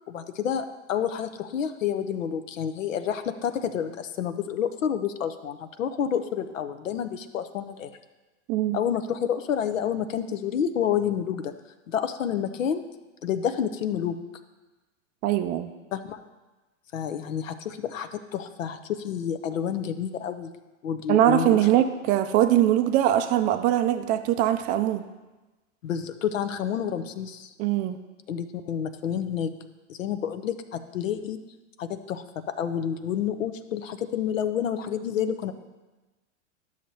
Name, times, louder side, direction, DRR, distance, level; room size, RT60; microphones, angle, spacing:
voice 1, 0.1-7.9 8.7-11.5 11.9-12.9 13.2-14.2 15.9-16.2 16.9-20.5 20.8-21.8 25.8-27.5 28.3-29.6 29.9-31.4 31.8-35.5, left 8 dB, 80° left, 10 dB, 0.8 m, -29 dB
voice 2, 15.2-15.7 21.1-25.0 27.6-28.0, right 12 dB, 25° right, 8 dB, 0.3 m, -22 dB
11.5 x 6.5 x 2.7 m, 1.1 s
hypercardioid pair, 115°, 38 cm